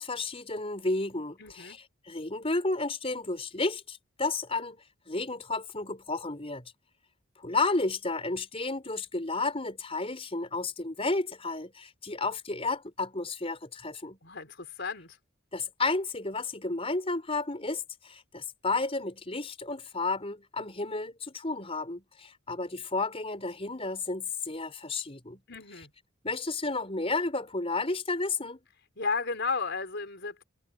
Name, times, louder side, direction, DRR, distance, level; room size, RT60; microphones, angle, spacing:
voice 1, 0.0-1.8 2.0-6.6 7.4-14.2 15.5-25.4 26.2-28.6, left 3 dB, 25° left, 5.1 m, -32 dB
voice 2, 1.4-1.8 14.2-15.2 25.5-25.9 29.0-30.4, left 4 dB, 55° left, 4.9 m, -33 dB
head